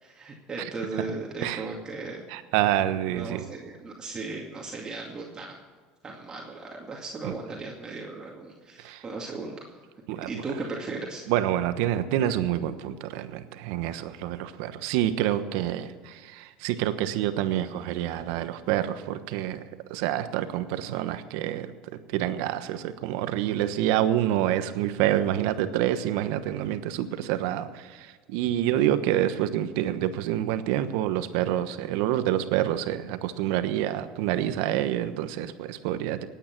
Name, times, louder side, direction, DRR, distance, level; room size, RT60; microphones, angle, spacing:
voice 1, 0.0-2.2 3.1-5.6 6.0-9.6 10.3-11.2, right 3 dB, 25° right, -1 dB, 2.3 m, -36 dB
voice 2, 2.3-3.5 7.2-7.3 8.8-9.0 10.1-10.4 11.3-19.6 19.9-36.3, right 12 dB, 75° right, 10 dB, 1.1 m, -27 dB
18.5 x 9.1 x 6.0 m, 1.5 s
supercardioid pair, 100°, 3 cm